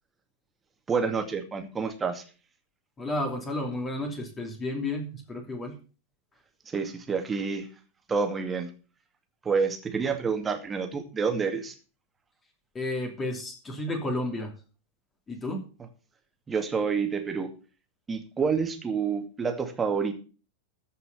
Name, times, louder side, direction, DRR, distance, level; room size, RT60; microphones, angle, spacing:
voice 1, 0.9-2.2 6.7-7.7 8.1-8.7 9.4-11.7 16.5-17.5 18.1-20.1, right 5 dB, 15° right, 5 dB, 2.3 m, -28 dB
voice 2, 3.0-5.8 12.7-14.5 15.3-15.6, left 1 dB, 20° left, 3 dB, 2.9 m, -32 dB
14.5 x 5.7 x 7.2 m, 0.36 s
figure-of-eight pair, 90°, 0 cm